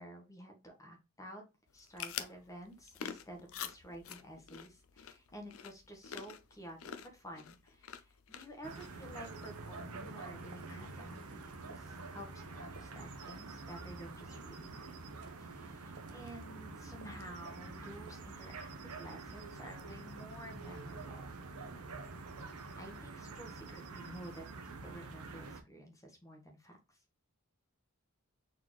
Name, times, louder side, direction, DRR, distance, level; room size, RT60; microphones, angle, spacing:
voice 1, 0.0-1.4 1.7-14.8 15.4-21.4 22.8-27.0, equal, 15° left, 2 dB, 1.1 m, -51 dB
sound 1, 1.7-9.6, left 8 dB, 65° left, 0.5 m, -47 dB
sound 2, 8.6-25.6, right 3 dB, 80° right, 0.8 m, -47 dB
4.2 x 3.8 x 3.1 m, 0.27 s
head